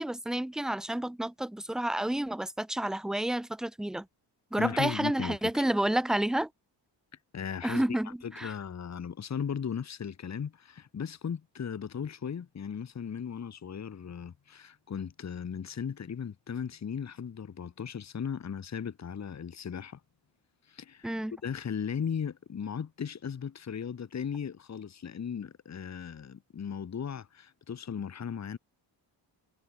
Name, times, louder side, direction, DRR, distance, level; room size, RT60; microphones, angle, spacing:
voice 1, 0.0-4.1 4.5-6.5 7.6-8.5 21.0-21.3, right 1 dB, ahead, 0.4 m, -30 dB
voice 2, 4.6-5.6 7.3-20.0 20.7-21.2 21.4-28.6, left 7 dB, 35° left, 1.7 m, -37 dB
wide cardioid pair, 150°, 45 cm